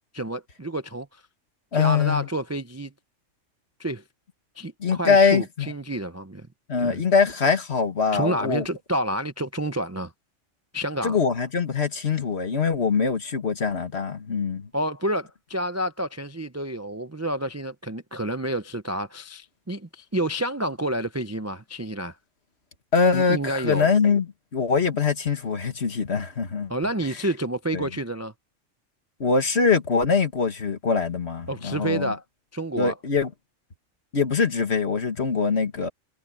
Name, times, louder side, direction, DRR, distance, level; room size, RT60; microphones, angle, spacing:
voice 1, 0.1-1.2 1.7-2.9 3.8-4.0 4.6-6.5 6.8-7.0 8.1-10.1 10.7-11.2 14.7-22.2 23.1-23.9 26.7-28.3 31.5-32.2 32.5-32.9, right 1 dB, 20° right, 0.5 m, -29 dB
voice 2, 1.7-2.3 4.8-5.7 6.7-8.7 11.0-14.7 22.9-26.7 27.7-27.9 29.2-32.1 32.8-33.3 34.1-35.9, left 5 dB, 55° left, 2.0 m, -23 dB
omnidirectional pair, 1.3 m